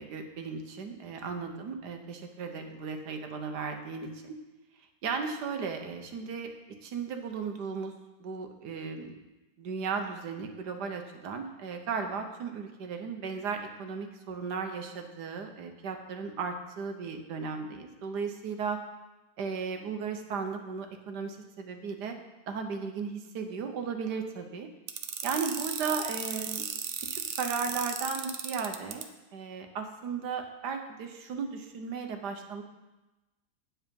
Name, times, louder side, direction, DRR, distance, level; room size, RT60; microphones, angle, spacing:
voice 1, 0.0-4.4 5.0-6.5 6.8-7.9 8.2-9.2 9.6-18.8 19.4-22.2 22.5-24.7 25.2-26.7 27.1-32.6, right 5 dB, 70° right, 5 dB, 1.5 m, -36 dB
sound 1, 24.9-29.0, right 7 dB, 90° right, 0.5 m, -35 dB
8.8 x 7.5 x 5.3 m, 1.1 s
omnidirectional pair, 2.0 m